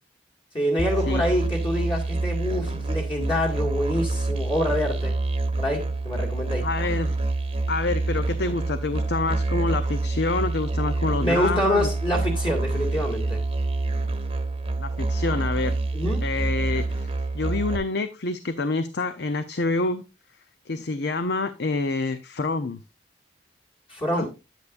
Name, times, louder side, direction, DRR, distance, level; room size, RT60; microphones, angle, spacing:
voice 1, 0.5-5.1 5.6-6.7 11.2-13.4 15.9-16.2 23.9-24.3, equal, 30° left, 2.1 m, -26 dB
Musical instrument, 0.8-17.8, right 2 dB, 30° right, 1.0 m, -27 dB
voice 2, 6.6-7.2 7.7-11.9 14.8-15.7 16.2-20.0 20.7-22.8 24.2-24.3, left 3 dB, 65° left, 0.7 m, -27 dB
9.6 x 9.2 x 2.5 m
head